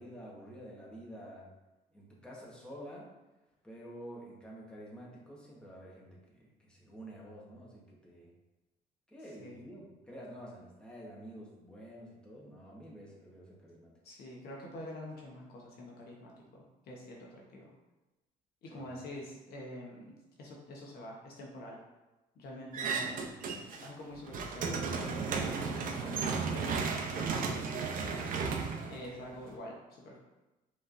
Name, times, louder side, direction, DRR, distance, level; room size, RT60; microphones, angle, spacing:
voice 1, 0.0-1.5 1.9-3.1 3.6-8.3 9.1-13.9 18.7-18.9, equal, 5° left, -5 dB, 1.2 m, -49 dB
voice 2, 14.0-17.7 18.6-21.8 22.4-23.2 23.8-28.3 28.9-30.2, left 1 dB, 65° left, -2 dB, 1.0 m, -47 dB
sound 1, 22.7-23.9 24.2-29.5, right 5 dB, 55° right, 0.6 m, -34 dB
5.2 x 3.3 x 2.6 m, 1.0 s
cardioid pair, 110°, 17 cm